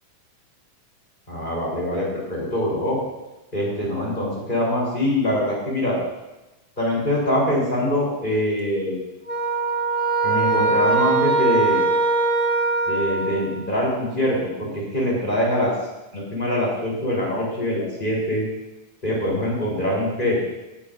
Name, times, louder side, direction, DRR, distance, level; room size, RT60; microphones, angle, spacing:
voice 1, 1.3-3.0 3.5-6.0 6.8-9.0 10.2-11.8 12.9-15.7 16.1-18.4 19.0-20.4, left 1 dB, 15° left, -5 dB, 3.7 m, -23 dB
sound 1, 9.3-13.7, right 3 dB, 50° left, 0.9 m, -21 dB
18.5 x 9.7 x 2.6 m, 1.0 s
omnidirectional pair, 3.7 m